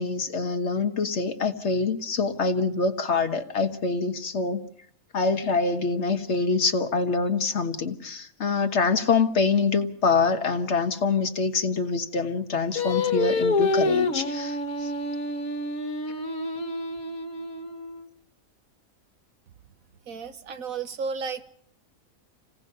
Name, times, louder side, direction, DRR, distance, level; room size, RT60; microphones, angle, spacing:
voice 1, 0.0-4.6 5.1-14.9, left 4 dB, 55° left, 7 dB, 1.6 m, -25 dB
Singing, 12.8-18.0, left 3 dB, 85° left, 2.0 m, -27 dB
voice 2, 20.1-21.5, right 5 dB, 80° right, 9 dB, 1.6 m, -33 dB
27.5 x 17.5 x 5.6 m, 0.63 s
omnidirectional pair, 1.4 m